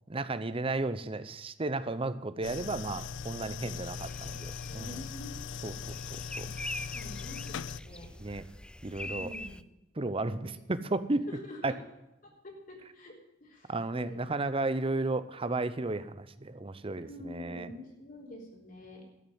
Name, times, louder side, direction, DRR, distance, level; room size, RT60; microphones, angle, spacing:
voice 1, 0.1-5.0 5.6-6.5 8.2-8.4 8.8-9.3 10.0-11.3 11.6-11.7 13.7-17.7, right 2 dB, 30° right, 13 dB, 0.7 m, -33 dB
sound 1, 2.4-7.8, left 6 dB, 80° left, 0.4 m, -40 dB
sound 2, 3.8-9.6, left 1 dB, 5° left, 0.4 m, -44 dB
voice 2, 4.7-5.3 6.4-6.5 6.9-8.1 9.0-9.6 10.3-10.5 11.3-11.8 12.2-14.2 17.0-19.1, left 1 dB, 50° left, -1 dB, 3.9 m, -47 dB
13.0 x 6.8 x 9.7 m, 0.91 s
head